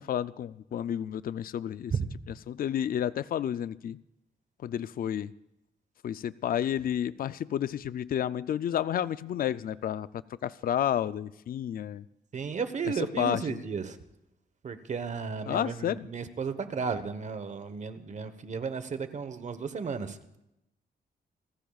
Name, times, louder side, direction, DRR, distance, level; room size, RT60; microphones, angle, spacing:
voice 1, 0.0-1.9 2.5-4.0 4.6-5.3 6.0-10.1 10.4-12.0 13.2-13.6 15.5-16.1, left 10 dB, 60° left, 16 dB, 0.4 m, -31 dB
voice 2, 12.3-14.0 14.6-20.2, right 5 dB, 45° right, 11 dB, 1.1 m, -34 dB
28.0 x 15.0 x 2.4 m, 0.87 s
wide cardioid pair, 150°, 17 cm